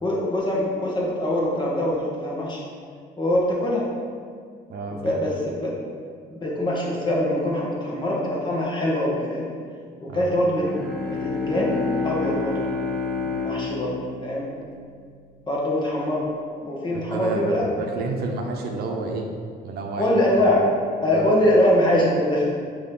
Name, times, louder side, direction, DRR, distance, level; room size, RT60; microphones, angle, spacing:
voice 1, 0.0-2.6 3.2-3.9 4.9-5.7 6.3-9.5 10.0-10.8 11.1-12.6 13.2-13.9 14.2-14.5 15.5-16.2 16.6-17.6 20.0-20.6 21.0-22.4, left 1 dB, 25° left, -4 dB, 1.6 m, -23 dB
voice 2, 4.7-5.4 10.1-10.3 16.9-19.3 19.6-20.2 21.1-21.4, right 3 dB, 65° right, 2 dB, 0.8 m, -30 dB
Bowed string instrument, 10.4-15.3, left 4 dB, 5° left, 1.0 m, -29 dB
6.6 x 3.1 x 5.4 m, 2.1 s
cardioid pair, 110°, 17 cm